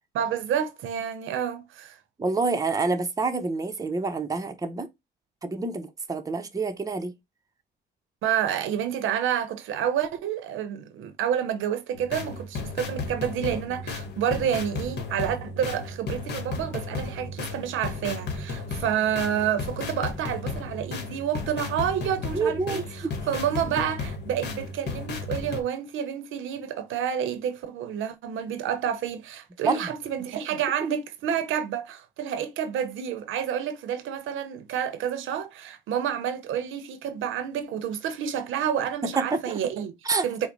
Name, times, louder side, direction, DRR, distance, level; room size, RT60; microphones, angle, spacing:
voice 1, 0.1-2.0 8.2-39.9 40.2-40.5, right 9 dB, 80° right, 0.7 m, -29 dB
voice 2, 2.2-4.9 5.4-7.1 22.3-23.1 29.6-29.9 39.0-39.6 40.0-40.3, right 4 dB, 15° right, 0.6 m, -27 dB
sound 1, 12.0-25.6, left 3 dB, 55° left, 1.2 m, -34 dB
4.5 x 2.1 x 3.8 m
cardioid pair, 90°, 20 cm